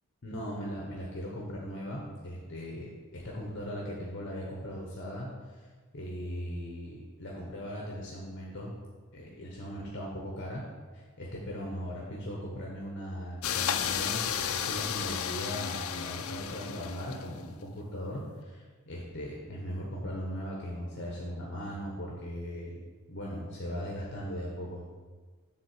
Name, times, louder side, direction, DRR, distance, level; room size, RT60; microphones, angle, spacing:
voice 1, 0.2-5.7 5.9-8.8 9.1-10.6 10.9-22.8 23.1-24.9, equal, 50° left, -3 dB, 1.0 m, -38 dB
sound 1, 13.4-17.5, left 8 dB, 75° left, 0.4 m, -33 dB
7.3 x 3.7 x 6.5 m, 1.5 s
head